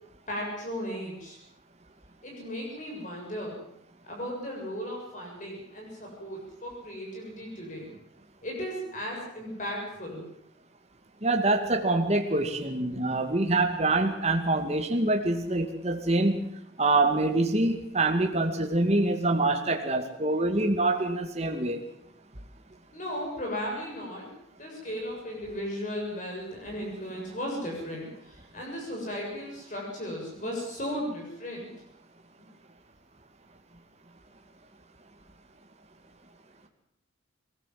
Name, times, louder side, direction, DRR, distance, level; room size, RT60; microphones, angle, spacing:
voice 1, 0.3-1.4 2.2-3.6 4.0-7.9 8.4-10.3 22.9-24.3 24.6-31.7, equal, 40° left, -1 dB, 7.2 m, -36 dB
voice 2, 11.2-16.5 16.8-21.8, right 2 dB, 30° right, 3 dB, 2.3 m, -25 dB
22.0 x 19.0 x 7.8 m, 0.74 s
head